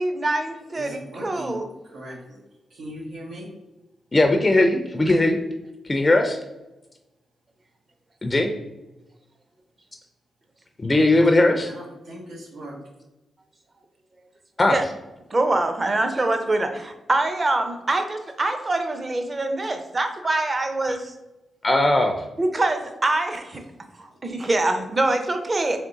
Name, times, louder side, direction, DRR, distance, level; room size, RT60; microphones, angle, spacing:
voice 1, 0.0-1.6 14.7-14.8 15.3-21.1 22.4-23.6 24.0-25.8, right 2 dB, 30° right, 6 dB, 0.6 m, -24 dB
voice 2, 0.7-1.6 1.8-2.4 2.7-3.5 11.7-12.8 24.1-24.2, equal, 90° right, -4 dB, 1.0 m, -38 dB
voice 3, 4.1-5.4 5.9-6.4 8.2-8.5 10.8-11.7 14.6-14.8 20.9-21.0 21.6-22.2, left 2 dB, 30° left, 4 dB, 0.4 m, -19 dB
3.6 x 3.0 x 3.9 m, 1.0 s
cardioid pair, 75°, 0 cm